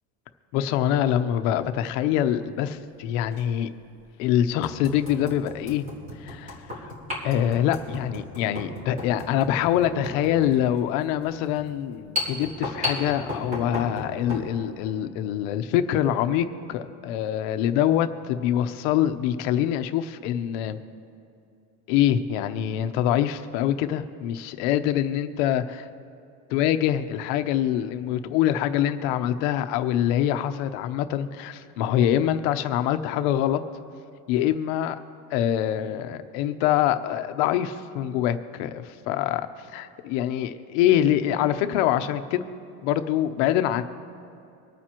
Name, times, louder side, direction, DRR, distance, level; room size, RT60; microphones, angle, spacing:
voice 1, 0.5-3.7 4.2-5.8 6.2-6.5 6.8-6.9 7.2-20.8 21.9-25.9 26.5-33.6 34.3-35.0 35.3-39.5 39.7-42.5 42.8-43.8, left 11 dB, 65° left, 10 dB, 0.8 m, -24 dB
sound 1, 1.6-1.9 3.3-3.4 4.0-4.1 4.6-14.5, left 2 dB, 20° right, 3.5 m, -34 dB
25.5 x 9.3 x 3.0 m, 2.6 s
cardioid pair, 180°, 38 cm